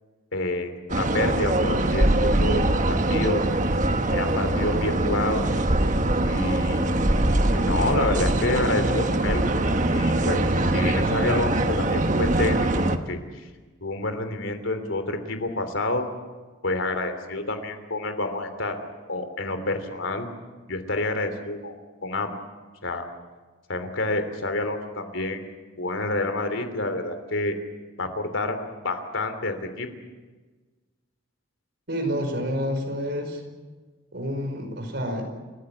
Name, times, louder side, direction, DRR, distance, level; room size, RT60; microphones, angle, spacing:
voice 1, 0.3-3.4 4.1-5.4 6.2-7.0 7.5-9.5 9.9-12.7 13.1-13.5 13.8-16.1 16.6-18.8 19.1-20.3 20.7-21.7 22.0-22.3 22.8-23.1 23.7-25.4 25.8-27.6 28.0-28.6 28.8-29.9, left 2 dB, 85° left, 7 dB, 3.1 m, -28 dB
sound 1, 0.9-13.0, right 1 dB, 40° right, 1.2 m, -22 dB
voice 2, 31.9-33.4 34.1-35.2, equal, 60° right, 4 dB, 5.2 m, -28 dB
29.5 x 15.0 x 8.7 m, 1.3 s
head